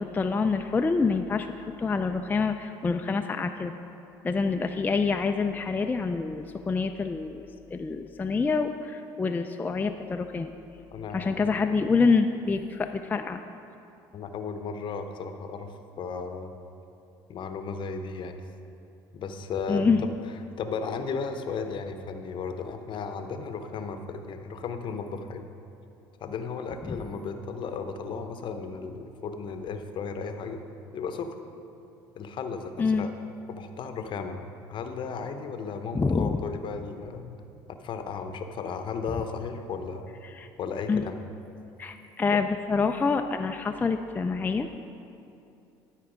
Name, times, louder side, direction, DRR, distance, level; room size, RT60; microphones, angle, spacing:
voice 1, 0.0-1.5 1.8-3.7 4.2-10.5 11.1-13.4 19.7-20.0 26.8-27.0 32.8-33.1 35.9-36.4 40.4-40.5 40.9-41.0 41.8-44.7, left 4 dB, 20° left, 6 dB, 0.3 m, -26 dB
voice 2, 10.9-11.4 14.1-16.5 17.3-18.4 19.1-20.1 20.6-25.5 26.2-30.6 30.9-31.4 32.2-33.1 33.5-34.4 34.7-37.4 37.7-40.1 40.6-41.2, left 5 dB, 50° left, 7 dB, 0.7 m, -35 dB
12.0 x 4.6 x 5.0 m, 2.7 s
supercardioid pair, 75°, 10 cm